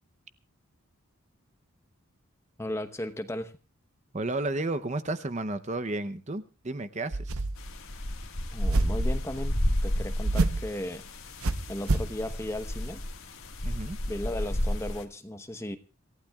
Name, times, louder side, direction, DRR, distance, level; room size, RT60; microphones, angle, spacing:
voice 1, 2.6-3.5 8.5-11.0 11.7-13.0 14.1-15.8, left 1 dB, 10° left, 9 dB, 0.9 m, -36 dB
voice 2, 4.1-7.4 13.6-14.0, right 2 dB, 30° right, 11 dB, 0.7 m, -32 dB
sound 1, 7.1-7.7 8.6-9.1 10.2-10.7 11.4-12.1, right 2 dB, 75° right, 0.9 m, -27 dB
sound 2, 7.6-15.0, left 1 dB, 70° left, 1.7 m, -32 dB
26.5 x 15.0 x 2.3 m, 0.33 s
head